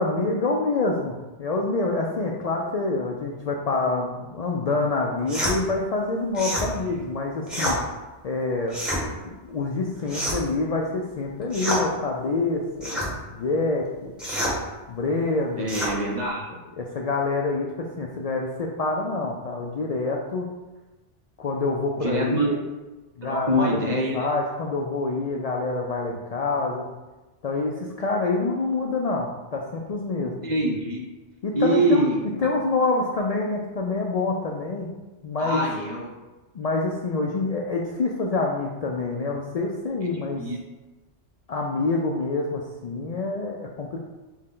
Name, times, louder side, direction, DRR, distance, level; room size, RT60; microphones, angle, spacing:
voice 1, 0.0-7.8 8.2-8.8 9.2-14.1 14.9-15.7 16.8-20.5 21.4-22.6 23.2-26.9 27.4-30.4 31.4-34.9 35.2-35.6 36.5-40.4 41.5-44.0, left 3 dB, 65° left, 0 dB, 0.4 m, -26 dB
sound 1, 5.3-5.6 6.3-6.7 7.5-7.8 8.7-9.0 10.1-10.5 11.5-11.8 12.8-13.1 14.2-14.6 15.7-15.9, equal, ahead, 1.0 m, -27 dB
voice 2, 15.6-16.5 22.0-22.5 23.2-24.3 30.2-31.0 31.5-32.2 35.4-36.1 40.4-40.6, right 1 dB, 45° right, -1 dB, 0.7 m, -24 dB
6.2 x 2.2 x 3.7 m, 1.1 s
omnidirectional pair, 1.2 m